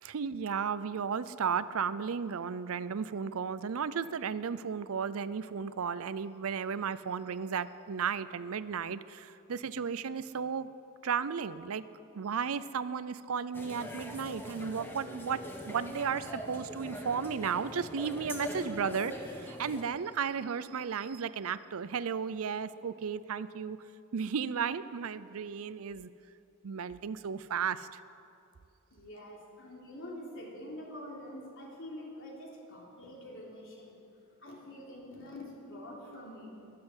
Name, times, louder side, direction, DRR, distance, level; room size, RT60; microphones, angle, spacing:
voice 1, 0.0-10.7 11.0-11.8 12.1-23.8 24.1-26.1 26.6-28.0, right 6 dB, 65° right, 15 dB, 0.5 m, -34 dB
sound 1, 13.5-19.8, left 1 dB, 10° left, 1.5 m, -42 dB
voice 2, 28.9-34.0 34.4-36.5, left 1 dB, 60° left, -3 dB, 3.7 m, -46 dB
22.0 x 7.7 x 8.0 m, 2.7 s
head